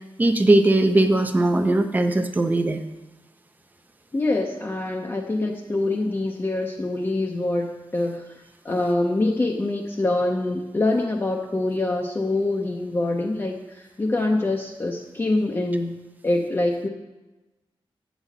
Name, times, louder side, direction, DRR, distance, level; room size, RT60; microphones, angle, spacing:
voice 1, 0.2-2.8, right 2 dB, 20° right, 6 dB, 0.5 m, -19 dB
voice 2, 4.1-16.0 16.2-16.9, left 2 dB, 25° left, 0 dB, 0.6 m, -25 dB
8.6 x 4.1 x 7.2 m, 1.1 s
wide cardioid pair, 150°, 9 cm